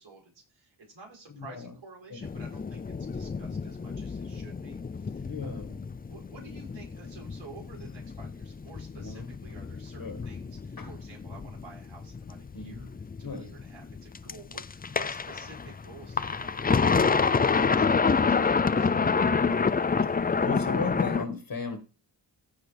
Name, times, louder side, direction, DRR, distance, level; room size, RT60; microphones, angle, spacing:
voice 1, 0.0-5.8 6.1-12.9 13.2-16.9 17.2-18.9, right 3 dB, 80° right, -2 dB, 6.6 m, -51 dB
voice 2, 1.3-1.7 2.1-2.2 5.2-5.7 9.0-9.3 10.0-10.2 10.8-10.9 12.5-12.8 13.2-13.5 20.4-21.8, left 4 dB, 45° left, 6 dB, 1.8 m, -35 dB
sound 1, 2.2-21.2, left 5 dB, 20° left, 0.4 m, -28 dB
15.5 x 6.5 x 3.4 m, 0.33 s
wide cardioid pair, 95°, 47 cm